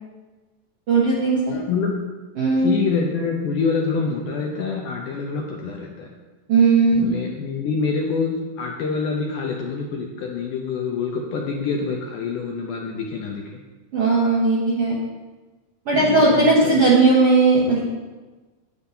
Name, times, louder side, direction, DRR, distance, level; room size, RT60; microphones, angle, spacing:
voice 1, 0.9-1.6 2.4-2.7 6.5-7.0 13.9-15.0 15.8-17.8, right 3 dB, 60° right, -7 dB, 1.6 m, -17 dB
voice 2, 1.5-2.0 2.6-6.1 7.0-13.6 15.9-16.8, left 5 dB, 75° left, 0 dB, 1.9 m, -26 dB
9.8 x 8.6 x 2.8 m, 1.2 s
omnidirectional pair, 4.3 m